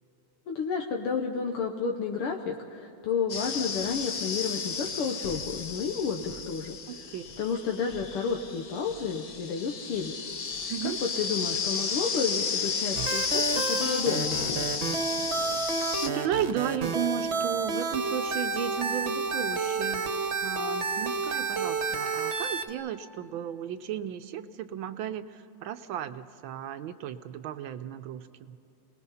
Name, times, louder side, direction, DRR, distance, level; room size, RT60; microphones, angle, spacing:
voice 1, 0.5-7.1 7.4-10.2 11.2-14.7, left 6 dB, 85° left, 2 dB, 1.9 m, -31 dB
sound 1, 3.3-16.1, left 5 dB, 50° left, 1.4 m, -33 dB
voice 2, 6.9-7.2 10.7-11.0 16.0-28.6, right 10 dB, 75° right, 10 dB, 1.4 m, -34 dB
sound 2, 12.9-22.7, right 4 dB, 40° right, 1.2 m, -30 dB
28.0 x 19.5 x 5.6 m, 2.9 s
omnidirectional pair, 2.4 m